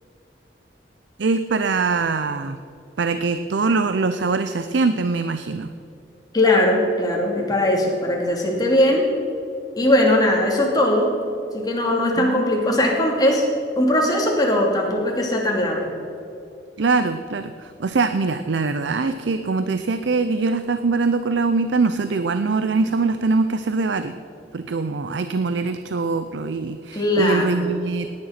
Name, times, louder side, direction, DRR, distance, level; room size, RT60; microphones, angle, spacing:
voice 1, 1.2-2.6 3.0-5.7 12.2-12.4 16.8-24.1 24.5-28.1, right 4 dB, 80° right, 10 dB, 0.6 m, -23 dB
voice 2, 6.3-9.1 9.8-11.2 11.5-13.4 13.8-15.9 26.9-27.6, left 1 dB, 20° left, -1 dB, 2.7 m, -19 dB
17.5 x 9.8 x 5.8 m, 2.6 s
head